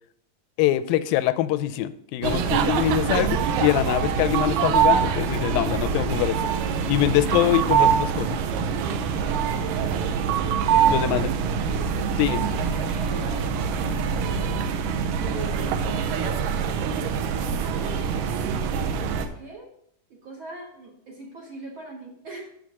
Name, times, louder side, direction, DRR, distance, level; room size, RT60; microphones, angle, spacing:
voice 1, 0.6-6.4 6.9-8.4 10.9-11.3 12.2-12.4, left 13 dB, 85° left, 14 dB, 2.3 m, -23 dB
sound 1, 2.2-19.3, right 7 dB, 80° right, 2.3 m, -24 dB
voice 2, 6.1-6.7 7.2-7.6 9.5-10.5 11.1-14.6 15.2-16.3 17.3-18.0 19.0-19.7 20.1-22.5, right 3 dB, 55° right, -1 dB, 1.4 m, -41 dB
7.1 x 6.4 x 5.9 m, 0.71 s
omnidirectional pair, 4.0 m